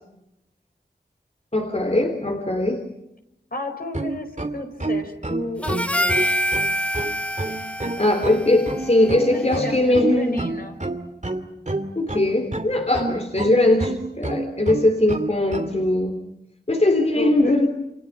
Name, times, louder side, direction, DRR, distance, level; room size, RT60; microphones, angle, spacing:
voice 1, 1.5-2.8 8.0-10.4 11.9-16.2 16.7-17.7, left 1 dB, 35° left, 5 dB, 3.3 m, -20 dB
voice 2, 3.5-6.3 9.3-10.8 17.1-17.6, left 2 dB, 55° left, 5 dB, 4.8 m, -32 dB
sound 1, 3.8-15.8, right 2 dB, 45° right, 2.6 m, -28 dB
Harmonica, 5.6-10.1, equal, 5° left, 0.9 m, -27 dB
29.5 x 28.5 x 6.0 m, 0.87 s
wide cardioid pair, 60°, 18 cm